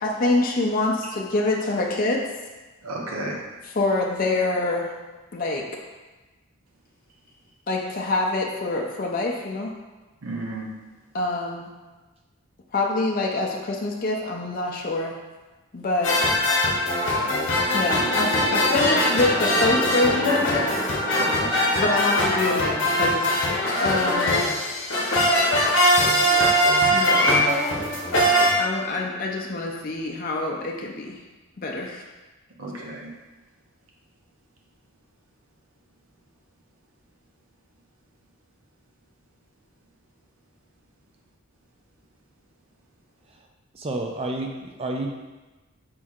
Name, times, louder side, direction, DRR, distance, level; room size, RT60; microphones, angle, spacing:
voice 1, 0.0-2.3 3.8-4.9 5.3-5.7 7.7-9.7 11.1-11.7 12.7-15.2 15.7-16.2 17.7-20.7 21.8-23.3 23.8-24.4 26.9-27.3 28.6-31.2 31.6-32.0, left 2 dB, 40° left, -1 dB, 0.4 m, -25 dB
voice 2, 2.8-3.4 10.2-10.7 21.1-21.6 32.6-33.1, right 2 dB, 70° right, -2 dB, 0.8 m, -32 dB
sound 1, 16.0-28.5, equal, 55° left, 0.8 m, -21 dB
sound 2, 17.6-24.1, right 1 dB, 20° left, 1.0 m, -32 dB
voice 3, 43.7-45.1, right 2 dB, 25° right, 2 dB, 0.4 m, -30 dB
4.5 x 4.3 x 2.4 m, 1.2 s
head